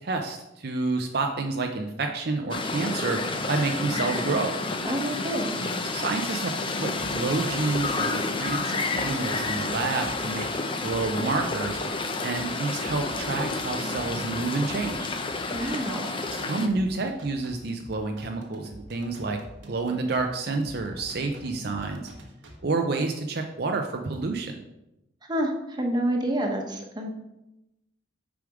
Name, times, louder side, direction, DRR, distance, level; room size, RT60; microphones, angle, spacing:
voice 1, 0.0-3.2 3.5-4.5 5.9-6.5 6.8-10.5 10.8-11.8 12.2-15.1 16.4-19.4 19.7-22.1 22.6-24.6, right 3 dB, 55° right, 3 dB, 0.6 m, -29 dB
sound 1, 2.5-16.7, left 3 dB, 25° left, 0.6 m, -30 dB
voice 2, 4.8-5.6 15.5-16.1 25.3-27.1, right 1 dB, 20° right, 2 dB, 1.0 m, -28 dB
sound 2, 7.0-22.6, right 1 dB, 85° right, 1.2 m, -47 dB
6.8 x 5.0 x 4.9 m, 0.91 s
head